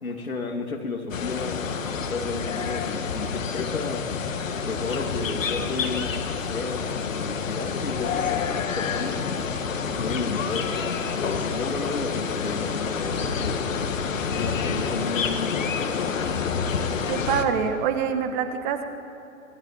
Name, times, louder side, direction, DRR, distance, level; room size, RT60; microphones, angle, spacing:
voice 1, 0.0-4.1 4.7-9.3 9.8-13.6 14.3-16.1, left 3 dB, 85° left, 3 dB, 3.2 m, -33 dB
sound 1, 1.1-17.4, left 6 dB, 65° left, 2.2 m, -28 dB
voice 2, 17.1-18.9, right 7 dB, 35° right, 7 dB, 2.0 m, -25 dB
24.5 x 18.0 x 9.1 m, 2.8 s
hypercardioid pair, 130°, 41 cm